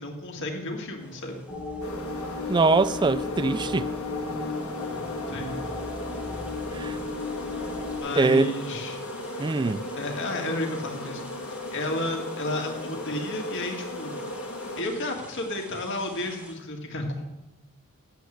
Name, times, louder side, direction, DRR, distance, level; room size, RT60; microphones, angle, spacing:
voice 1, 0.0-1.4 5.3-5.6 8.0-9.0 10.0-11.2 11.7-14.1 14.8-17.2, left 2 dB, 60° left, 1.9 m, -32 dB
sound 1, 1.0-16.5, equal, 5° right, 1.6 m, -50 dB
sound 2, 1.5-8.0, left 3 dB, 20° left, 1.7 m, -34 dB
sound 3, 1.8-14.8, left 1 dB, 80° left, 1.7 m, -36 dB
voice 2, 2.5-3.9 6.7-7.0 8.2-8.5 9.4-9.8, right 3 dB, 20° right, 0.3 m, -22 dB
8.4 x 8.1 x 7.8 m
head